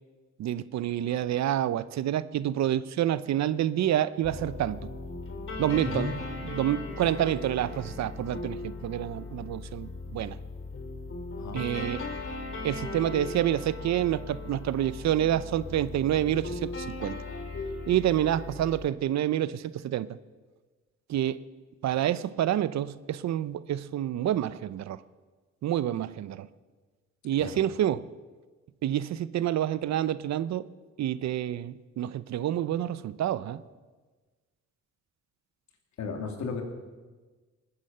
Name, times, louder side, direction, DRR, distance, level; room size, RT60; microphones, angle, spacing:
voice 1, 0.4-4.8 5.6-6.1 6.4-10.4 11.5-12.0 12.6-17.2 17.9-20.2 21.1-21.4 21.8-25.0 25.6-26.5 27.2-28.1 28.8-30.7 31.0-33.6, right 11 dB, 65° right, 0.7 m, -28 dB
sound 1, 4.2-18.9, left 3 dB, 45° left, 2.8 m, -38 dB
voice 2, 5.8-6.2 11.4-11.6 17.5-17.6 27.4-27.6 36.0-36.6, left 4 dB, 65° left, 2.9 m, -34 dB
19.5 x 9.9 x 7.6 m
cardioid pair, 90°, 30 cm